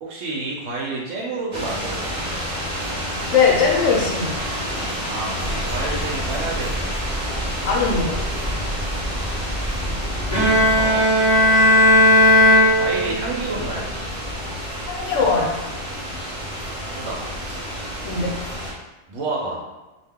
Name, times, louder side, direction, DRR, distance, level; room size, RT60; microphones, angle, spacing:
voice 1, 0.0-2.3 5.1-7.0 10.6-11.3 12.7-13.9 16.8-17.2 19.1-19.6, right 2 dB, 75° right, -2 dB, 0.9 m, -30 dB
sound 1, 1.5-18.7, equal, 40° right, 0.8 m, -29 dB
voice 2, 3.3-4.4 7.6-8.2 14.9-15.6 18.0-18.4, left 5 dB, 80° left, -2 dB, 0.9 m, -20 dB
sound 2, 5.4-10.8, right 1 dB, 20° left, 0.3 m, -30 dB
Bowed string instrument, 10.3-13.4, left 1 dB, 35° left, 0.8 m, -15 dB
2.3 x 2.2 x 3.4 m, 1.1 s
omnidirectional pair, 1.3 m